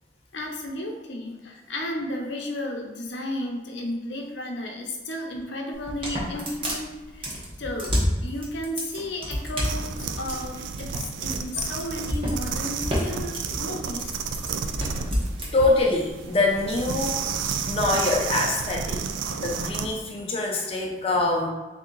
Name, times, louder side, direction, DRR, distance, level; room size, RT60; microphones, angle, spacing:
voice 1, 0.3-14.2, left 1 dB, 75° left, 1 dB, 0.7 m, -33 dB
sound 1, 5.7-15.5, equal, 30° right, 0.9 m, -29 dB
sound 2, 9.6-19.9, right 6 dB, 85° right, 0.3 m, -31 dB
voice 2, 15.5-17.2 17.7-19.0 19.4-21.5, left 2 dB, 30° left, -1 dB, 0.7 m, -24 dB
3.6 x 2.7 x 3.8 m, 1.2 s
head